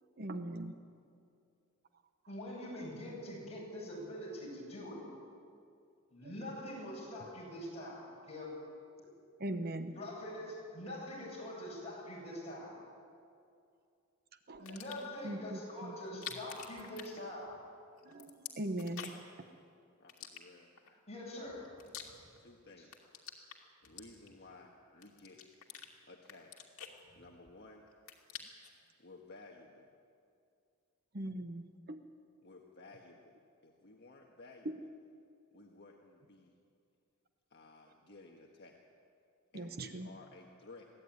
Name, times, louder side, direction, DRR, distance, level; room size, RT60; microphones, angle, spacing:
voice 1, 0.2-0.7 6.2-6.3 9.4-10.0 14.5-14.8 15.2-16.2 18.0-19.1 31.1-32.0 34.6-34.8 39.5-40.1, right 1 dB, 45° right, 8 dB, 1.0 m, -40 dB
voice 2, 2.3-5.0 6.1-8.6 9.9-12.8 14.6-17.6 20.9-21.7 22.8-22.9, left 1 dB, 30° left, -4 dB, 7.8 m, -44 dB
sound 1, 14.5-15.2 16.0-17.7 18.0-19.4 20.1-20.9 21.4-22.5 22.8-24.5 25.0-25.9 26.2-27.6 27.9-28.8, left 8 dB, 70° left, 2.6 m, -48 dB
voice 3, 20.0-20.7 22.4-23.1 23.8-25.4 26.1-26.5 27.1-27.8 29.0-29.9 32.4-33.4 33.6-34.9 35.5-36.5 37.5-38.8 39.5-40.9, left 2 dB, 50° left, 0 dB, 1.6 m, -56 dB
22.5 x 16.0 x 9.6 m, 2.4 s
head